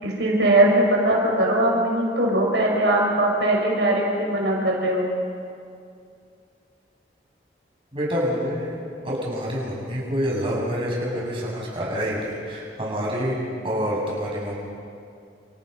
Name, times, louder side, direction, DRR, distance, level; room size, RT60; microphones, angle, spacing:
voice 1, 0.0-5.1, right 1 dB, 80° right, -2 dB, 5.9 m, -20 dB
voice 2, 7.9-14.6, equal, 30° right, -4 dB, 7.5 m, -27 dB
29.5 x 29.0 x 5.6 m, 2.4 s
head